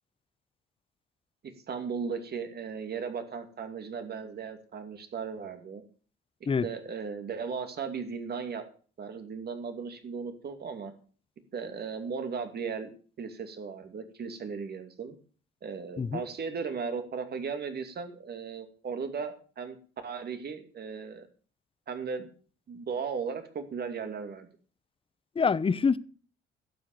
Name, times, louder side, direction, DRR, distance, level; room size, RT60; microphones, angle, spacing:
voice 1, 1.7-5.8 6.6-8.6 9.0-10.9 11.5-12.9 13.2-15.2 15.6-19.8 20.0-21.3 21.9-22.3 22.7-24.5, right 5 dB, 55° right, 2.5 m, -36 dB
voice 2, 25.4-26.0, left 5 dB, 25° left, 0.7 m, -25 dB
12.0 x 7.9 x 6.7 m
cardioid pair, 90°, 20 cm